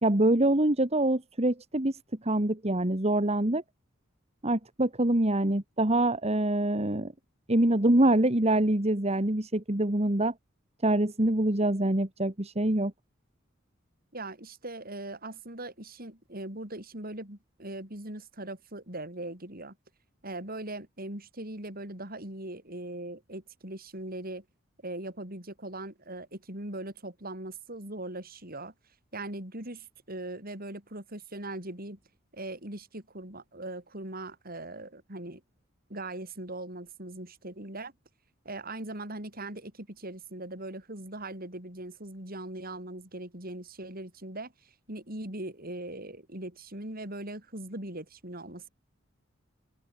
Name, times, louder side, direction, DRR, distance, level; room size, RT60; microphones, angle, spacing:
voice 1, 0.0-3.6 4.4-7.1 7.5-10.3 10.8-12.9, right 1 dB, 30° right, 1.9 m, -25 dB
voice 2, 14.1-19.8 20.2-24.4 24.8-28.7 29.1-32.0 32.3-35.4 35.9-37.9 38.4-48.7, right 1 dB, 45° right, 7.5 m, -40 dB
open air
head